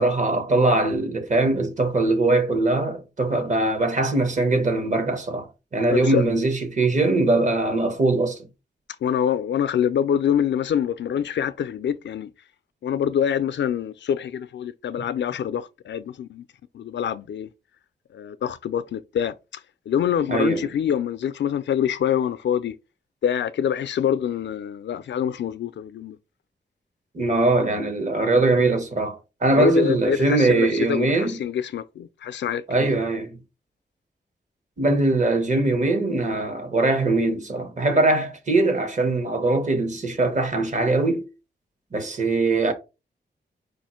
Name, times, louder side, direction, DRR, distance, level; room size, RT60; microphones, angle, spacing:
voice 1, 0.0-5.5 5.7-8.5 15.0-15.1 20.3-20.7 27.1-31.4 32.7-33.4 34.8-41.3 41.9-42.7, right 2 dB, 45° right, 1.1 m, -21 dB
voice 2, 5.9-6.2 9.0-12.3 12.8-16.4 16.7-17.5 18.1-19.3 19.9-22.7 23.2-26.2 29.5-33.0, left 9 dB, 85° left, 0.4 m, -25 dB
4.9 x 2.5 x 4.2 m
wide cardioid pair, 155°, 18 cm